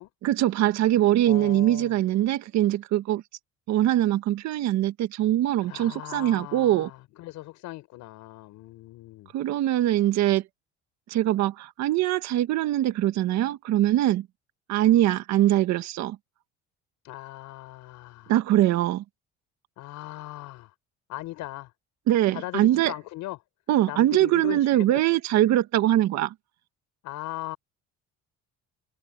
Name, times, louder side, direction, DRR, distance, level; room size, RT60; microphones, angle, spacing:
voice 1, 0.2-3.2 3.7-6.9 9.3-10.4 11.1-14.3 14.7-16.2 18.3-19.0 22.1-22.9 23.7-26.3, right 13 dB, 65° right, 1.7 m, -22 dB
voice 2, 1.2-1.9 5.6-9.3 17.0-18.3 19.8-20.7 21.1-21.7 22.3-23.4 23.8-25.0 27.0-27.6, left 17 dB, 75° left, 6.3 m, -38 dB
cardioid pair, 135°, 30 cm